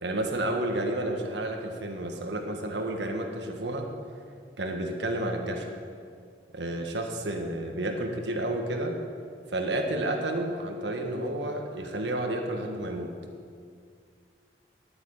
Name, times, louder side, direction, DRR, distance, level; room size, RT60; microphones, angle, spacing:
voice 1, 0.0-3.9 4.6-5.7 6.5-9.0 9.5-13.1, right 1 dB, 90° right, 2 dB, 1.6 m, -31 dB
10.5 x 9.1 x 8.8 m, 2.2 s
head